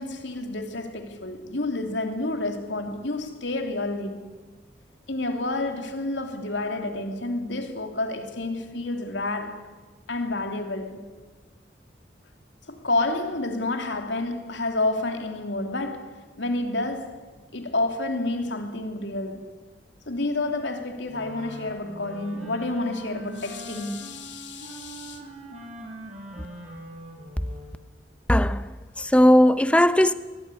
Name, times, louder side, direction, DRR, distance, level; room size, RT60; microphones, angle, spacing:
voice 1, 0.0-4.3 5.1-9.6 10.1-11.0 12.7-17.2 17.5-19.5 20.1-25.2, left 2 dB, 80° left, 3.0 m, -29 dB
Wind instrument woodwind instrument, 21.1-27.8, equal, 35° right, 5.4 m, -42 dB
voice 2, 28.3-28.7 29.0-30.1, left 1 dB, 5° left, 0.7 m, -17 dB
22.5 x 22.0 x 9.8 m
head